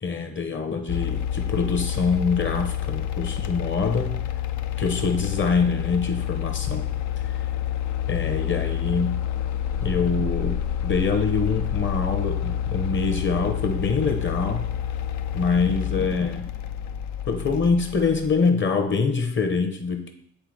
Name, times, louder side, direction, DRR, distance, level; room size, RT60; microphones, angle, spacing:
voice 1, 0.0-4.2 4.8-6.8 8.1-9.2 9.8-14.7 15.3-16.5 17.3-20.1, left 4 dB, 40° left, 6 dB, 1.1 m, -25 dB
sound 1, 0.9-18.7, left 10 dB, 70° left, 0.5 m, -28 dB
7.8 x 3.8 x 5.0 m, 0.68 s
cardioid pair, 90°, 30 cm